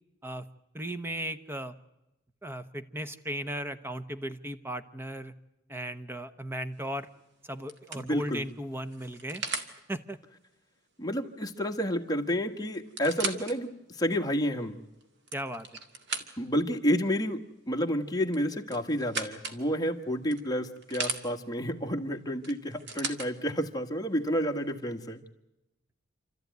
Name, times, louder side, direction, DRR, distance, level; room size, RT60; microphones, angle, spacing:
voice 1, 0.7-1.7 2.4-5.3 5.7-7.1 7.4-9.4 9.9-10.2 15.3-15.7, right 1 dB, 10° right, 11 dB, 0.9 m, -36 dB
sound 1, 6.8-7.1 7.7-9.7 11.8-11.9 12.1-12.2 12.7-13.6 14.2-14.3 15.0-16.6 18.3-19.6 20.3-21.2 22.4-23.3 24.2-24.3, right 4 dB, 60° right, 2.0 m, -37 dB
voice 2, 7.9-8.4 11.0-14.8 16.4-17.4 17.7-25.2, equal, 20° left, 2 dB, 1.5 m, -30 dB
28.0 x 13.5 x 9.4 m, 0.95 s
head